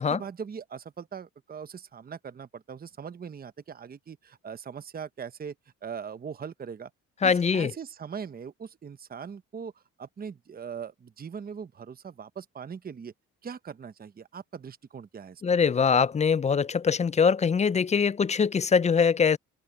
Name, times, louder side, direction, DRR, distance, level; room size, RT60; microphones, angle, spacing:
voice 1, 0.0-5.5 5.8-6.9 7.2-9.7 10.0-13.1 13.4-15.4, right 7 dB, 30° right, 0.8 m, -40 dB
voice 2, 7.2-7.7 15.4-19.4, left 6 dB, 25° left, 0.4 m, -23 dB
open air
cardioid pair, 90°, 30 cm